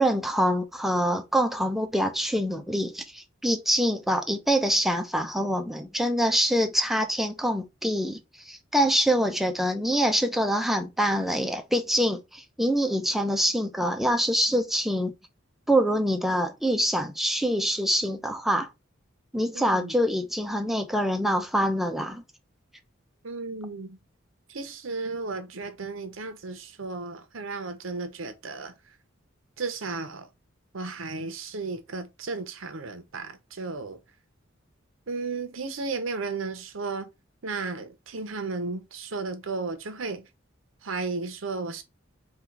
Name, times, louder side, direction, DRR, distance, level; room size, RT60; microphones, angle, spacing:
voice 1, 0.0-15.1 15.7-18.7 19.3-22.2, equal, ahead, 0.5 m, -25 dB
voice 2, 19.5-19.9 23.2-24.0 24.5-28.7 29.6-30.3 30.7-34.0 35.1-37.1 37.4-40.3 40.8-41.8, right 3 dB, 85° right, 0.8 m, -34 dB
3.7 x 2.4 x 4.5 m
head